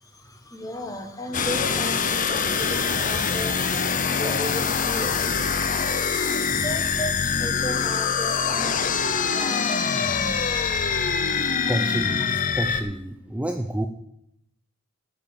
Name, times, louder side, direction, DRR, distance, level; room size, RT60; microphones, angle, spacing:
voice 1, 0.0-11.7, equal, 15° left, 4 dB, 1.4 m, -36 dB
sound 1, 1.3-12.8, left 6 dB, 35° left, 0.6 m, -24 dB
voice 2, 11.7-13.9, right 1 dB, 5° right, 3 dB, 0.5 m, -29 dB
9.4 x 6.9 x 7.3 m, 0.76 s
head